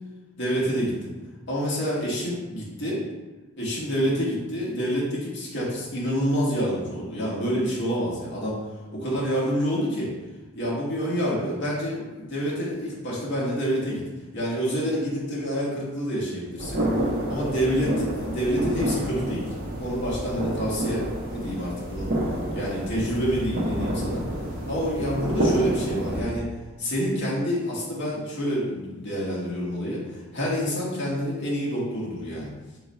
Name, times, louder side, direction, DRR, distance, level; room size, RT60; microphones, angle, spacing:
voice 1, 0.4-1.1 1.5-3.0 3.6-8.6 8.9-10.1 10.6-14.0 14.3-16.8 17.3-19.4 19.8-22.1 22.5-24.2 24.7-26.5 26.8-32.5, equal, 55° left, -6 dB, 1.3 m, -27 dB
sound 1, 16.6-26.2, right 1 dB, 40° right, 0.8 m, -29 dB
4.7 x 2.3 x 4.1 m, 1.2 s
head